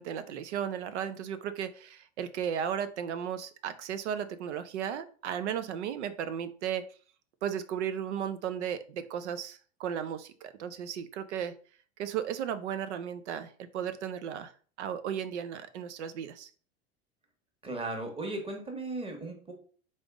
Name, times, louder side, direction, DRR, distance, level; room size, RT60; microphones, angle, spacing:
voice 1, 0.0-6.8 7.4-11.5 12.0-14.5 14.8-16.5, right 8 dB, 80° right, 12 dB, 0.6 m, -35 dB
voice 2, 17.6-19.6, right 2 dB, 15° right, 3 dB, 1.4 m, -37 dB
4.0 x 3.4 x 3.5 m, 0.42 s
hypercardioid pair, 95°, 34 cm